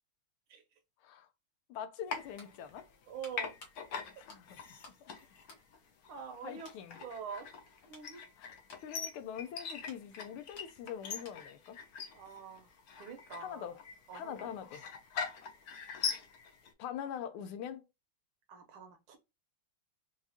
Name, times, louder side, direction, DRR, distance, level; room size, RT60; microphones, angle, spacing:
voice 1, 1.7-2.9 4.2-4.6 5.0-5.1 6.4-7.0 8.4-8.6 8.8-11.8 13.4-13.8 14.1-14.8 16.8-17.8, left 9 dB, 80° left, 1.5 m, -43 dB
sound 1, 1.9-5.1 5.4-6.3 6.6-6.9 7.4-11.7 11.9-12.1, left 3 dB, 50° left, 1.4 m, -59 dB
sound 2, 2.1-3.0 3.3-16.7, left 6 dB, 65° left, 0.9 m, -43 dB
voice 2, 3.1-3.5 4.1-4.2 6.1-6.7 7.0-7.5 7.8-8.2 12.1-12.7 13.0-13.8 14.1-14.5 18.5-19.2, right 6 dB, 75° right, 1.7 m, -45 dB
4.7 x 2.4 x 2.7 m
omnidirectional pair, 2.4 m